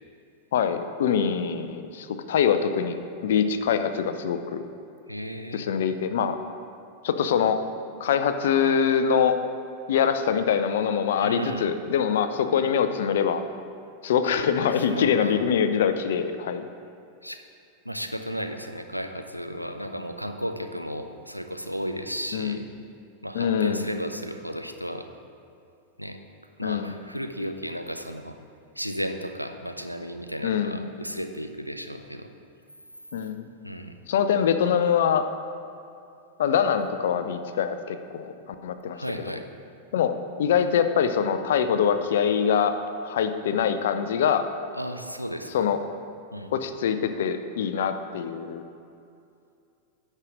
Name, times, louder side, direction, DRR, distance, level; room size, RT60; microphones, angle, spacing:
voice 1, 0.5-3.0 3.2-4.6 5.5-6.4 7.0-7.6 8.0-9.3 9.9-13.4 14.0-16.7 22.3-22.7 23.3-23.9 26.6-27.0 30.4-30.9 33.1-33.5 34.1-35.2 36.4-38.3 38.6-39.4 39.9-40.1 40.4-42.7 43.0-44.4 45.5-45.8 46.5-48.6, left 7 dB, 60° left, 9 dB, 0.6 m, -24 dB
voice 2, 5.1-5.7 11.2-11.7 14.9-15.4 17.2-17.4 17.8-22.6 23.2-25.1 26.0-26.2 26.6-28.4 28.8-32.3 33.6-34.0 38.9-39.5 44.7-45.7 46.3-46.6, equal, 90° right, 6 dB, 0.6 m, -34 dB
9.7 x 5.5 x 6.2 m, 2.6 s
figure-of-eight pair, 90°, 0 cm